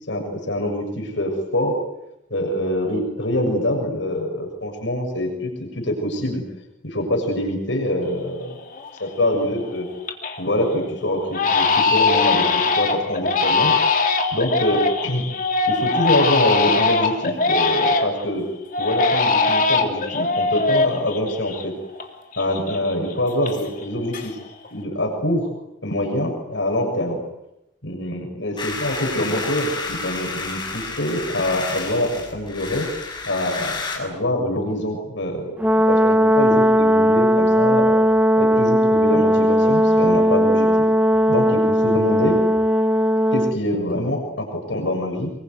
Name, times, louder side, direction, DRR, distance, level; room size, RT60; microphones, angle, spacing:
voice 1, 0.1-1.8 2.3-6.4 6.8-8.6 9.0-9.9 10.4-13.8 14.3-15.2 15.7-18.5 18.8-21.7 22.4-24.4 24.7-25.5 25.8-27.2 27.8-32.9 33.3-37.9 38.4-40.9 41.3-42.4 43.3-45.3, left 1 dB, 75° left, 2 dB, 6.9 m, -25 dB
Crying sobbing, 8.2-8.3 8.7-9.2 9.6-10.4 10.7-10.9 11.3-18.3 18.7-22.1 22.3-23.8 24.1-24.7, left 4 dB, 45° left, 3.2 m, -21 dB
sound 1, 28.6-34.0, left 4 dB, 25° left, 6.2 m, -31 dB
Brass instrument, 35.6-43.6, equal, 5° right, 1.0 m, -17 dB
25.5 x 23.0 x 9.4 m, 0.88 s
head